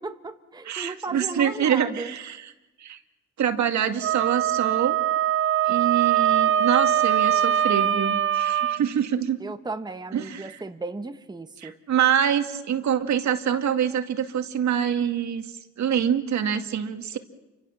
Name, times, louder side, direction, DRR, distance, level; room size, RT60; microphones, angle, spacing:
voice 1, 0.0-2.1 9.4-11.8, right 3 dB, 15° right, 8 dB, 1.2 m, -35 dB
voice 2, 0.7-2.4 2.8-3.0 3.4-5.0 5.6-9.4 10.1-10.6 11.6-17.2, right 9 dB, 65° right, 7 dB, 2.2 m, -25 dB
Wind instrument woodwind instrument, 4.0-8.8, right 10 dB, 45° right, 1.1 m, -22 dB
29.0 x 25.0 x 7.3 m, 1.0 s
cardioid pair, 90°, 30 cm